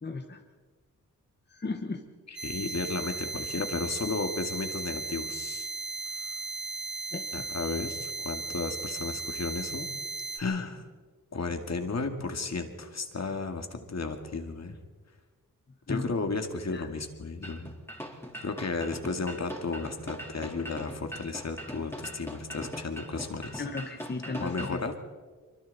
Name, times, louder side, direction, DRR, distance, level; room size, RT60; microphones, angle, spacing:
voice 1, 0.0-0.4 1.5-2.0 7.1-7.5 15.9-16.1 16.7-16.9 23.6-24.8, left 3 dB, 30° left, 3 dB, 1.5 m, -35 dB
voice 2, 2.3-5.7 7.3-9.9 10.4-10.8 11.3-14.8 15.9-17.7 18.4-23.6 24.4-24.9, left 4 dB, 50° left, 5 dB, 2.3 m, -33 dB
sound 1, 2.4-10.4, right 4 dB, 35° right, 3.0 m, -36 dB
sound 2, 17.4-24.8, equal, 5° left, 3.9 m, -41 dB
26.0 x 24.0 x 4.2 m, 1.4 s
wide cardioid pair, 100°, 34 cm